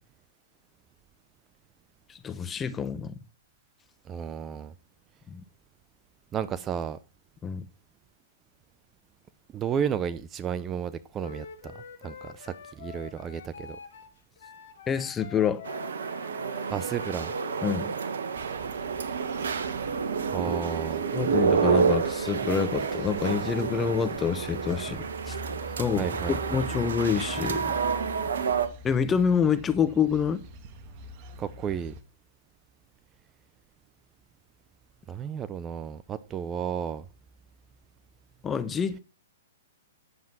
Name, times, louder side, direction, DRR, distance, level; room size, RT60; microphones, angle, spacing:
voice 1, 2.1-3.1 5.3-5.4 7.4-7.7 14.9-15.6 17.6-17.9 21.1-25.4 25.8-27.8 28.8-30.4 38.4-39.0, left 7 dB, 15° left, 1.0 m, -27 dB
voice 2, 4.1-4.7 6.3-7.0 9.5-11.8 12.0-13.8 16.7-17.3 20.3-21.0 26.0-26.6 31.4-31.9 35.1-37.0, right 8 dB, 20° right, 0.6 m, -32 dB
Wind instrument woodwind instrument, 11.2-17.6, left 6 dB, 60° left, 2.0 m, -46 dB
sound 1, 15.6-28.7, right 6 dB, 70° right, 1.5 m, -29 dB
sound 2, 18.3-32.0, equal, 40° right, 1.5 m, -45 dB
9.8 x 7.5 x 6.0 m
hypercardioid pair, 125°, 0 cm